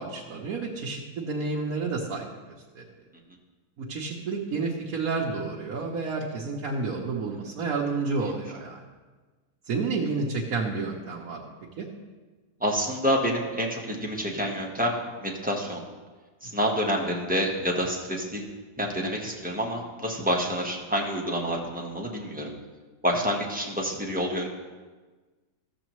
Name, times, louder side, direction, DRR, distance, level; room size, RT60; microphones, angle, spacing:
voice 1, 0.0-2.3 2.7-2.8 3.8-8.8 9.7-11.9, right 4 dB, 70° right, -3 dB, 1.3 m, -30 dB
voice 2, 12.6-15.8 16.4-18.4 18.8-22.5 23.0-24.5, equal, 5° right, -2 dB, 0.9 m, -28 dB
14.0 x 7.1 x 3.0 m, 1.3 s
omnidirectional pair, 1.6 m